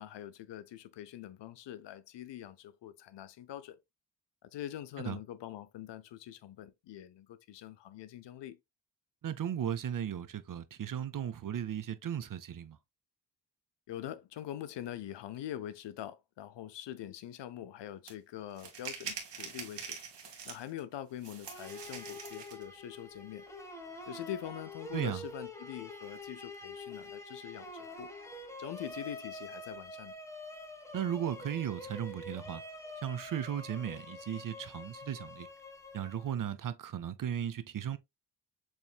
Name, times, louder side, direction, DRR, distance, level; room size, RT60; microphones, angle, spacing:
voice 1, 0.0-3.8 4.4-8.6 13.9-20.0 20.4-23.5 24.1-28.1 28.6-30.2, left 11 dB, 85° left, 0.7 m, -44 dB
voice 2, 9.2-12.8 24.9-25.2 30.9-32.6 33.0-35.5 35.9-38.0, right 9 dB, 50° right, 0.7 m, -36 dB
sound 1, 18.1-18.2 18.6-20.8 21.2-22.6, right 6 dB, 80° right, 1.7 m, -44 dB
sound 2, 21.5-36.5, left 2 dB, 5° left, 1.3 m, -46 dB
7.2 x 3.1 x 2.3 m
cardioid pair, 90°, 41 cm